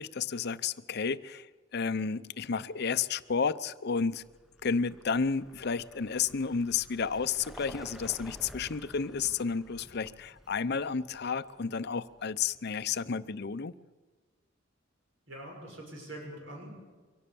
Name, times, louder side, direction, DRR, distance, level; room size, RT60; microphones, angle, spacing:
voice 1, 0.0-1.5 1.7-4.2 4.6-13.7, left 5 dB, 55° left, 0.6 m, -31 dB
Vehicle, 4.0-12.8, equal, ahead, 0.8 m, -52 dB
voice 2, 15.3-16.7, right 1 dB, 70° right, 6.7 m, -44 dB
23.5 x 17.0 x 7.0 m
head